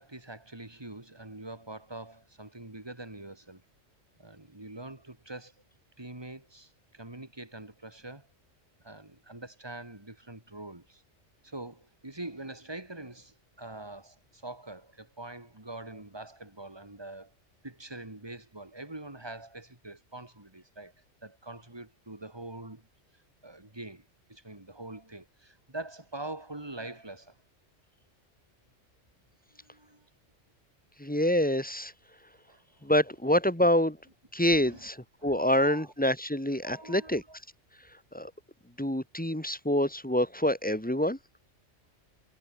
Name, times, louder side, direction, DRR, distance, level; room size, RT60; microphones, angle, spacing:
voice 1, 0.0-3.6 4.2-5.5 6.0-8.3 8.8-11.0 11.4-17.3 17.6-20.9 21.2-22.9 23.4-27.4 29.6-30.1 32.5-32.6 34.4-34.9 35.2-35.9 36.6-37.4, right 2 dB, 20° right, 3.1 m, -44 dB
voice 2, 31.0-31.9 32.8-34.0 34.3-37.2 38.1-38.3 38.8-41.2, left 1 dB, 5° left, 2.6 m, -26 dB
omnidirectional pair, 1.3 m